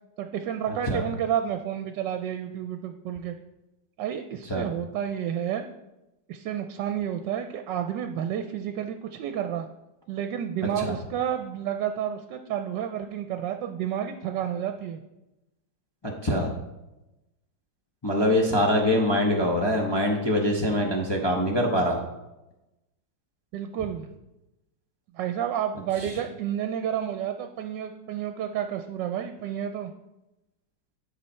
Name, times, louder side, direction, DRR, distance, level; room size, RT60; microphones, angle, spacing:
voice 1, 0.2-3.3 4.0-5.6 6.3-9.7 10.1-15.0 23.5-24.1 25.1-29.9, right 9 dB, 80° right, 7 dB, 1.2 m, -30 dB
voice 2, 16.0-16.5 18.0-22.0 26.0-26.1, left 1 dB, 25° left, -1 dB, 0.6 m, -24 dB
10.5 x 4.9 x 4.3 m, 0.96 s
omnidirectional pair, 1.9 m